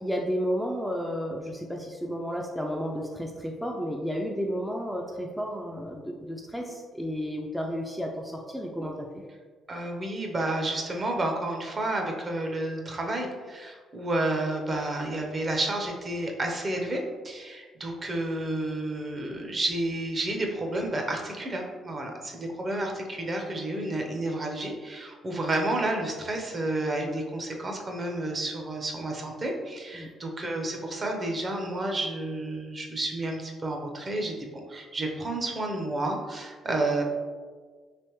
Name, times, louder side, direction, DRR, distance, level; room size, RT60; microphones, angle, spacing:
voice 1, 0.0-9.2 29.9-30.1, equal, ahead, -1 dB, 0.4 m, -32 dB
voice 2, 9.7-37.0, right 2 dB, 35° right, 2 dB, 0.6 m, -31 dB
3.3 x 3.0 x 3.0 m, 1.5 s
cardioid pair, 90°, 0 cm